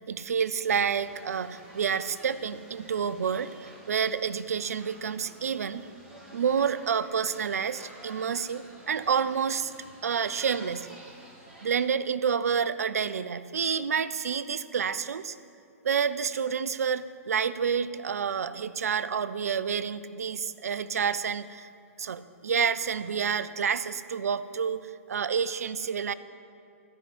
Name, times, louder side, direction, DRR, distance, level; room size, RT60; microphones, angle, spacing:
voice 1, 0.1-5.9 6.3-9.7 10.0-10.9 11.6-15.4 15.8-21.7 22.0-26.1, right 7 dB, 80° right, 15 dB, 0.5 m, -29 dB
sound 1, 0.9-11.9, equal, 5° right, 2.5 m, -51 dB
13.5 x 5.6 x 7.8 m, 2.6 s
hypercardioid pair, 125°, 8 cm